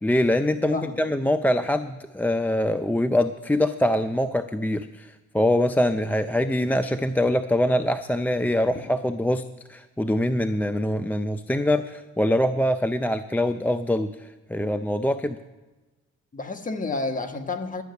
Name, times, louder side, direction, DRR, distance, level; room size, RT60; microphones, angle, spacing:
voice 1, 0.0-9.4 9.7-15.4, left 1 dB, 5° left, 9 dB, 0.4 m, -24 dB
voice 2, 0.7-1.0 8.7-8.8 16.3-17.8, left 3 dB, 25° left, 5 dB, 1.3 m, -30 dB
11.5 x 6.3 x 9.4 m, 1.1 s
cardioid pair, 90°, 30 cm